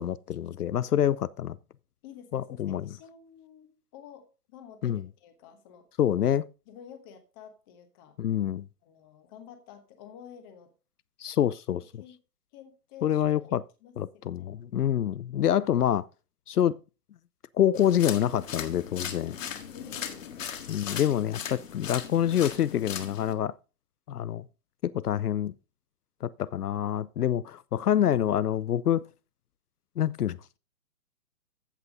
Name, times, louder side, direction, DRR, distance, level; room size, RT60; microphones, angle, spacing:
voice 1, 0.0-1.6 2.3-2.8 4.8-5.0 6.0-6.5 8.2-8.6 11.2-11.8 13.0-13.6 14.0-16.0 16.5-16.8 17.6-19.4 20.7-23.5 24.1-24.4 24.8-25.5 26.2-29.0 30.0-30.4, left 10 dB, 70° left, 0.7 m, -26 dB
voice 2, 2.0-5.9 6.7-8.2 8.8-10.7 11.7-12.2 12.5-13.4 13.8-14.5 19.7-20.3, left 8 dB, 15° left, 1.0 m, -50 dB
sound 1, 17.7-23.3, left 8 dB, 55° left, 1.9 m, -38 dB
14.5 x 5.6 x 3.9 m
hypercardioid pair, 160°, 48 cm